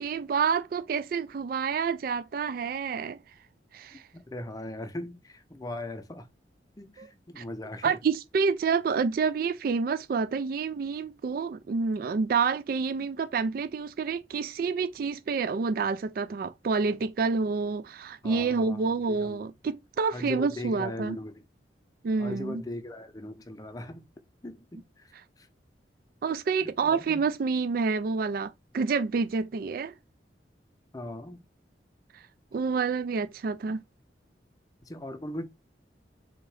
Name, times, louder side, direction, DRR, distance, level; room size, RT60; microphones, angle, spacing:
voice 1, 0.0-3.2 3.7-4.0 7.0-7.1 7.4-7.5 7.8-21.2 22.0-22.6 26.2-29.9 32.1-32.2 32.5-33.8, right 5 dB, 55° right, 0.3 m, -28 dB
voice 2, 3.9-6.3 6.8-8.0 18.2-19.4 20.1-21.4 22.2-24.0 24.4-25.1 25.4-25.5 26.6-27.2 30.9-31.4 34.9-35.4, left 1 dB, 20° left, 0.6 m, -39 dB
3.7 x 2.9 x 4.7 m
head